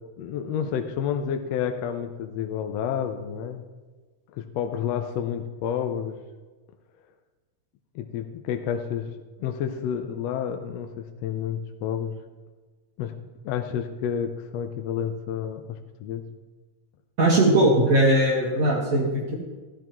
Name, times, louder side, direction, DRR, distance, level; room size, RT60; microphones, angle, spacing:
voice 1, 0.2-3.6 4.3-6.2 7.9-9.1 9.4-12.2 13.0-13.2 13.4-16.2, left 8 dB, 75° left, 5 dB, 1.6 m, -30 dB
voice 2, 17.2-19.3, right 1 dB, 40° right, -1 dB, 1.5 m, -20 dB
13.5 x 12.5 x 3.0 m, 1.3 s
omnidirectional pair, 3.4 m